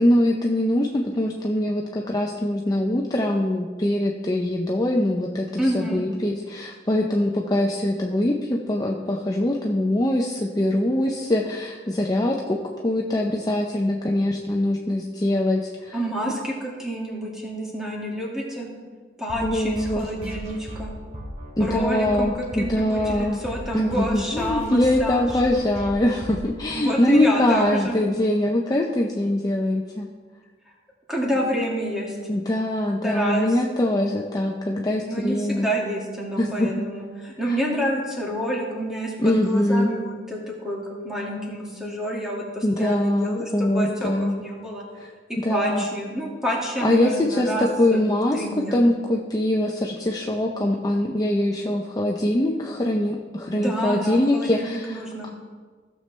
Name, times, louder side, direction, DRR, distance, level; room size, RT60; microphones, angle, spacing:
voice 1, 0.0-16.0 19.4-20.1 21.6-23.4 23.7-30.1 32.3-35.7 36.4-36.7 37.5-37.6 39.2-39.9 42.6-44.4 45.4-45.8 46.8-48.4 48.7-55.0, left 1 dB, 20° left, 0 dB, 0.6 m, -23 dB
voice 2, 5.6-6.0 15.9-18.7 19.2-20.9 21.6-25.3 26.7-28.0 31.1-32.1 33.0-33.6 35.1-40.8 41.0-44.8 45.3-48.8 53.5-55.3, equal, 5° right, -4 dB, 2.1 m, -28 dB
sound 1, 19.3-27.7, equal, 40° right, 2.3 m, -37 dB
15.5 x 6.8 x 3.3 m, 1.5 s
head